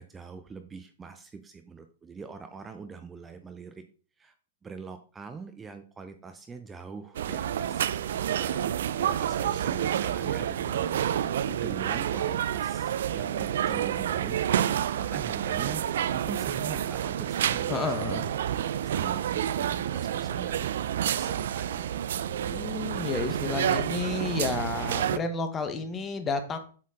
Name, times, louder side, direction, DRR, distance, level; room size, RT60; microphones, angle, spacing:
voice 1, 0.0-3.8 4.2-4.3 4.6-8.7 9.0-14.4 14.9-15.8 16.1-20.7 21.0-21.9, right 5 dB, 15° right, 8 dB, 0.5 m, -43 dB
sound 1, 7.1-25.2, right 10 dB, 70° right, 0.4 m, -29 dB
voice 2, 17.7-18.3 22.4-26.6, left 4 dB, 20° left, 8 dB, 1.0 m, -31 dB
7.6 x 4.2 x 3.7 m, 0.41 s
hypercardioid pair, 125°, 0 cm